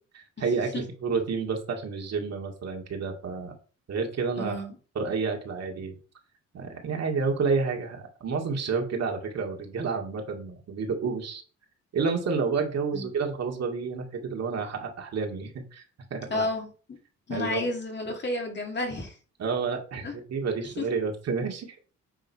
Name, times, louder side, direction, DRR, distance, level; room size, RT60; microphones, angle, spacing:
voice 1, 0.1-3.5 3.9-4.6 5.0-5.9 6.5-11.4 11.9-15.8 16.1-16.5 17.3-17.7 19.4-21.8, right 5 dB, 55° right, 2 dB, 2.2 m, -30 dB
voice 2, 4.4-4.8 12.9-13.1 16.3-16.7 17.3-19.2 20.0-20.2 20.8-20.9, left 2 dB, 35° left, 2 dB, 2.4 m, -31 dB
9.1 x 3.9 x 4.7 m, 0.39 s
cardioid pair, 90°, 30 cm